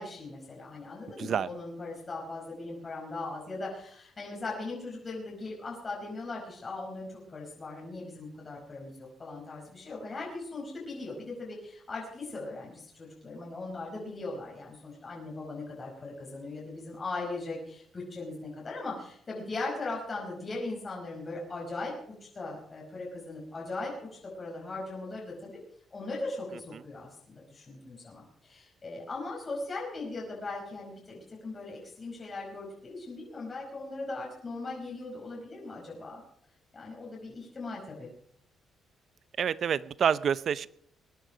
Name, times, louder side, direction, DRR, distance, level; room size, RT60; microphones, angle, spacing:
voice 1, 0.0-23.9 24.2-25.6 25.9-36.2 36.7-38.1, left 3 dB, 35° left, -3 dB, 5.2 m, -39 dB
voice 2, 1.2-1.5 26.7-26.8 39.4-40.7, right 8 dB, 55° right, 17 dB, 0.6 m, -28 dB
21.0 x 10.5 x 5.1 m, 0.66 s
cardioid pair, 90°, 0 cm